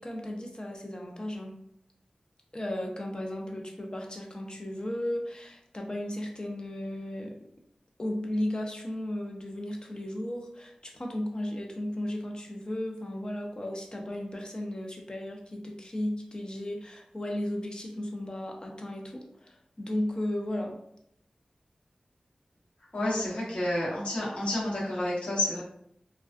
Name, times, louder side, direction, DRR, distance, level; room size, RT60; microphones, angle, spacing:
voice 1, 0.0-1.6 2.5-7.3 8.0-20.8, left 1 dB, 35° left, 1 dB, 0.5 m, -35 dB
voice 2, 22.9-25.6, left 1 dB, 60° left, -7 dB, 1.0 m, -30 dB
2.3 x 2.3 x 2.4 m, 0.73 s
cardioid pair, 45°, 2 cm